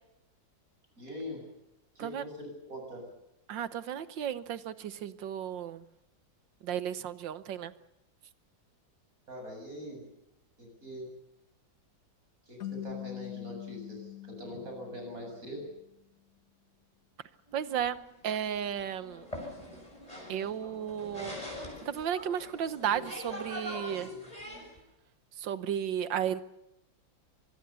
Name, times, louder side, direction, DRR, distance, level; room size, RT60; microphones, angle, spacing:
voice 1, 1.0-1.4 2.0-3.1 9.3-10.0 10.6-11.1 12.4-15.7, equal, 45° right, 2 dB, 8.0 m, -42 dB
voice 2, 3.5-5.8 6.6-7.7 17.5-19.2 20.3-21.4 21.8-24.1 25.4-26.4, right 9 dB, 70° right, 14 dB, 1.7 m, -34 dB
sound 1, 12.6-15.8, left 14 dB, 50° left, 1.5 m, -43 dB
sound 2, 17.5-24.8, left 1 dB, 20° left, 6.8 m, -43 dB
25.5 x 21.0 x 6.9 m, 0.90 s
omnidirectional pair, 2.1 m